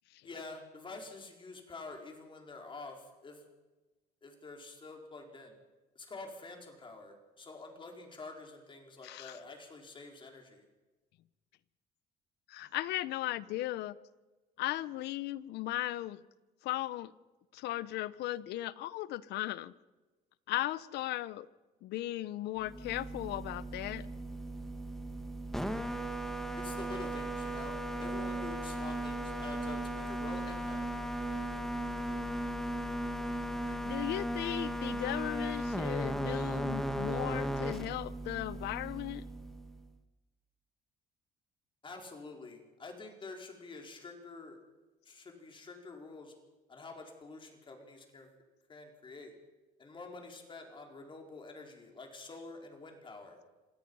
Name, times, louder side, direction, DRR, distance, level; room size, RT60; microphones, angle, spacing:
voice 1, 0.2-3.4 4.2-5.6 5.9-10.7 26.6-30.8 41.8-44.6 45.0-46.3 46.7-48.3 48.7-49.3 49.8-53.4, left 3 dB, 30° left, 2 dB, 4.7 m, -48 dB
voice 2, 9.0-9.4 12.5-14.0 14.6-16.2 16.6-17.1 17.5-19.7 20.5-21.5 21.8-24.1 33.7-39.2, left 15 dB, 80° left, 18 dB, 0.8 m, -37 dB
sound 1, 22.6-39.8, right 1 dB, ahead, 1.6 m, -36 dB
26.5 x 17.5 x 5.6 m, 1.2 s
cardioid pair, 110°, 17 cm